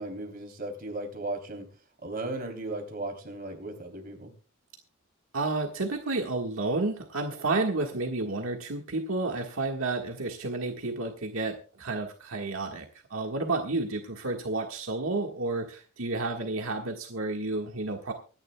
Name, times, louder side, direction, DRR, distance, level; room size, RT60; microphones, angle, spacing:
voice 1, 0.0-1.7 2.0-4.3, right 2 dB, 45° right, 3 dB, 3.3 m, -36 dB
voice 2, 5.3-12.8 13.1-18.1, right 3 dB, 80° right, 2 dB, 1.6 m, -31 dB
25.0 x 10.5 x 2.3 m, 0.37 s
head